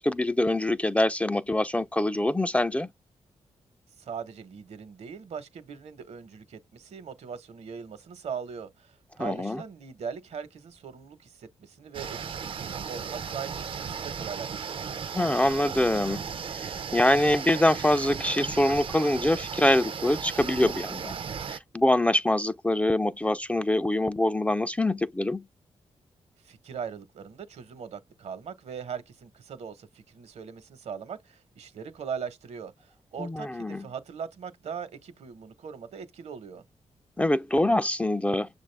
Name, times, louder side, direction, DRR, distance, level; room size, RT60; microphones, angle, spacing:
voice 1, 0.0-2.9 9.2-9.6 15.1-16.2 16.9-21.1 21.5-25.4 33.2-33.8 37.2-38.5, left 1 dB, 10° left, 0.3 m, -24 dB
voice 2, 4.0-14.9 26.4-36.6, right 6 dB, 75° right, 1.0 m, -40 dB
sound 1, 11.9-21.6, right 6 dB, 50° right, 0.5 m, -36 dB
6.6 x 2.4 x 3.3 m
cardioid pair, 85°, 11 cm